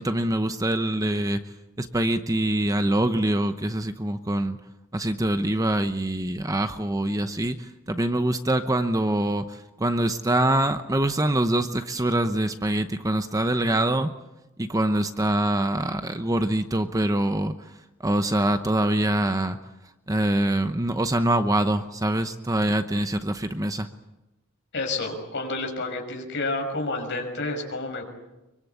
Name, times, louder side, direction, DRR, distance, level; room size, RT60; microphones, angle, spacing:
voice 1, 0.0-1.4 1.8-4.6 4.9-7.6 7.9-14.1 14.6-17.5 18.0-19.6 20.1-23.9, right 1 dB, 15° right, 9 dB, 0.8 m, -24 dB
voice 2, 24.7-28.0, left 2 dB, 55° left, 3 dB, 5.9 m, -29 dB
24.5 x 23.5 x 8.3 m, 1.0 s
head